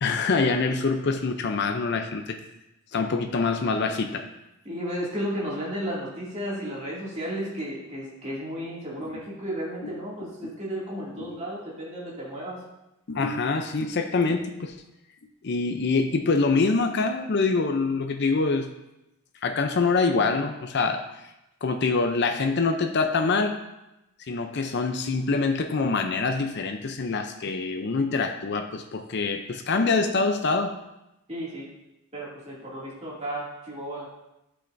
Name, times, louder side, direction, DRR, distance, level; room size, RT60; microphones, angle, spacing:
voice 1, 0.0-2.4 2.9-4.2 9.0-9.1 9.8-9.9 11.2-11.3 13.1-14.7 15.4-18.7 19.4-21.0 21.6-23.6 24.3-30.8, left 4 dB, 50° left, 6 dB, 0.5 m, -25 dB
voice 2, 4.6-12.6 31.3-31.7 32.1-34.1, equal, 30° right, -6 dB, 2.4 m, -33 dB
11.5 x 5.7 x 2.6 m, 0.91 s
head